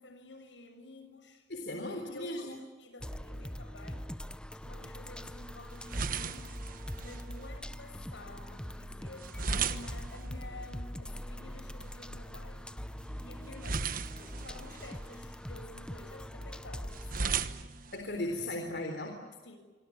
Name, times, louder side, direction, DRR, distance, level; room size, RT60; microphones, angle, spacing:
voice 1, 0.0-4.1 4.5-6.6 7.0-12.6 13.2-17.5 19.4-19.6, left 2 dB, 80° left, 7 dB, 7.0 m, -51 dB
voice 2, 1.5-2.6 17.9-19.2, left 1 dB, 65° left, 3 dB, 3.7 m, -37 dB
sound 1, 3.0-17.2, equal, 5° left, 0.7 m, -43 dB
sound 2, 4.8-18.8, right 5 dB, 50° right, 1.3 m, -40 dB
27.0 x 25.0 x 8.5 m, 1.4 s
head